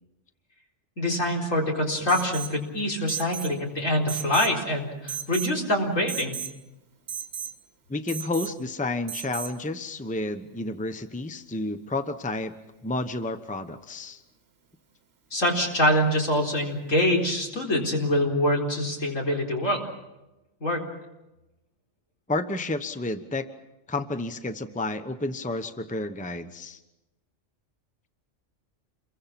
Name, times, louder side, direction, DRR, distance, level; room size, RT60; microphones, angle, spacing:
voice 1, 1.0-6.4 15.3-19.8 20.6-20.8, left 1 dB, 80° left, 0 dB, 4.6 m, -25 dB
Alarm, 2.1-2.6 3.1-3.5 4.1-4.6 5.1-5.6 6.1-6.6 7.1-7.5 8.1-8.5 9.1-9.5, right 8 dB, 55° right, 1.7 m, -35 dB
voice 2, 7.9-12.5 12.8-14.2 22.3-23.5 23.9-26.8, left 2 dB, 5° left, 9 dB, 0.9 m, -31 dB
28.0 x 23.0 x 5.9 m, 0.98 s
omnidirectional pair, 1.3 m